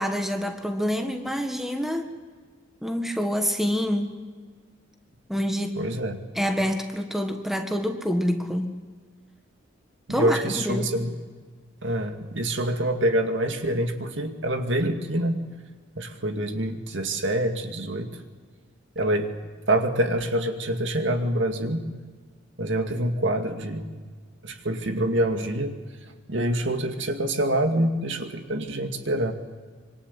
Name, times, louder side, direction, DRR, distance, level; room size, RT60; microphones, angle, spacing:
voice 1, 0.0-2.1 2.8-4.2 5.3-5.8 6.3-8.7 10.1-10.9, equal, ahead, 5 dB, 1.7 m, -27 dB
voice 2, 5.8-6.2 10.1-11.2 11.8-15.4 16.0-18.1 19.0-19.3 19.7-21.9 22.6-23.9 24.4-25.8 26.3-29.3, right 1 dB, 65° right, 6 dB, 2.3 m, -26 dB
26.0 x 24.0 x 8.4 m, 1.5 s
head